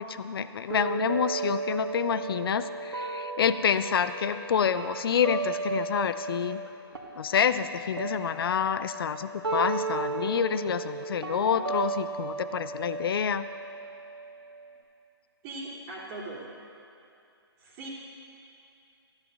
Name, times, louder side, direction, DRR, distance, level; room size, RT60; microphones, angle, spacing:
voice 1, 0.0-6.6 7.2-13.4, left 7 dB, 65° left, 12 dB, 0.5 m, -28 dB
sound 1, 0.7-6.7 6.9-14.7, right 3 dB, 75° right, 1.8 m, -35 dB
voice 2, 15.4-16.4 17.6-17.9, right 2 dB, 30° right, -9 dB, 2.7 m, -39 dB
14.5 x 7.6 x 6.4 m, 2.7 s
figure-of-eight pair, 130°, 13 cm